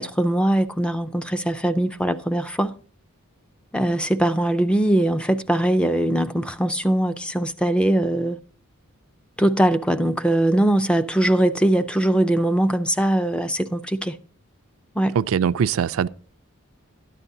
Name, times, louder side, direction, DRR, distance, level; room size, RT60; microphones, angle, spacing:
voice 1, 0.0-2.8 3.7-8.4 9.4-14.2 15.0-15.2, right 1 dB, 5° left, 0.4 m, -21 dB
voice 2, 15.2-16.1, right 7 dB, 70° right, 0.3 m, -21 dB
12.5 x 9.9 x 2.6 m
head